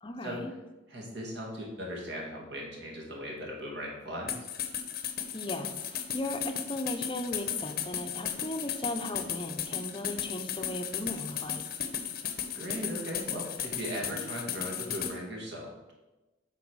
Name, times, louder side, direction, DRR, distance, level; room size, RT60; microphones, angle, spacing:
voice 1, 0.0-0.5 5.3-11.6, left 1 dB, 25° left, 6 dB, 0.7 m, -36 dB
voice 2, 0.9-4.3 12.5-15.9, equal, 60° right, -1 dB, 2.1 m, -38 dB
sound 1, 4.3-15.1, left 9 dB, 50° left, 0.8 m, -35 dB
8.1 x 4.1 x 6.2 m, 1.1 s
head